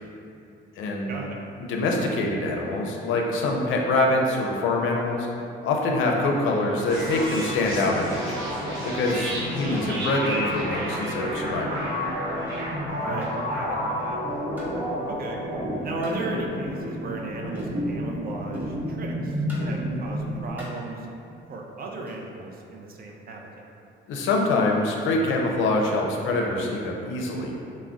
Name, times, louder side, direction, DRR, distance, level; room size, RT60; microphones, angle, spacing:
voice 1, 0.8-1.1 1.7-5.3 5.6-8.5 8.8-11.8 24.1-27.5, left 2 dB, 80° left, 0 dB, 0.4 m, -25 dB
sound 1, 6.1-12.5, left 1 dB, 5° left, 1.0 m, -46 dB
sound 2, 6.9-20.5, equal, 80° right, 0.7 m, -30 dB
sound 3, 12.5-12.7 13.2-13.5 14.6-14.8 16.0-16.3 17.5-17.8 18.5-18.8 19.5-19.8 20.6-20.9 22.1-22.3, equal, 10° right, 0.7 m, -44 dB
voice 2, 12.9-14.2 15.1-15.4 15.8-21.1 21.5-23.6, right 3 dB, 50° right, 0 dB, 0.4 m, -35 dB
2.4 x 2.0 x 3.4 m, 2.6 s
cardioid pair, 90°, 20 cm